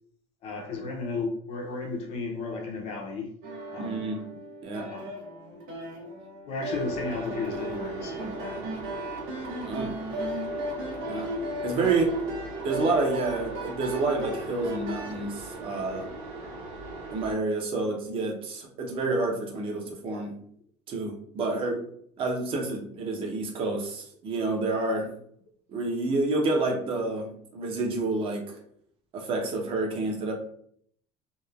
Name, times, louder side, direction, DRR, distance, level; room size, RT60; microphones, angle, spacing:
voice 1, 0.4-3.3 3.7-4.1 4.7-5.1 6.5-8.6, left 3 dB, 45° left, 1 dB, 0.5 m, -34 dB
sound 1, 3.4-15.2, right 1 dB, 75° right, 0.8 m, -36 dB
voice 2, 3.8-4.2 4.6-4.9 9.6-9.9 11.1-11.3 11.6-12.1 12.6-16.1 17.1-20.4 20.9-21.8 22.2-25.1 25.7-28.6 29.1-30.3, right 3 dB, 40° right, 1 dB, 0.6 m, -29 dB
sound 2, 6.7-17.3, right 2 dB, 55° right, 1.1 m, -40 dB
3.0 x 2.1 x 2.3 m, 0.65 s
cardioid pair, 160°, 14 cm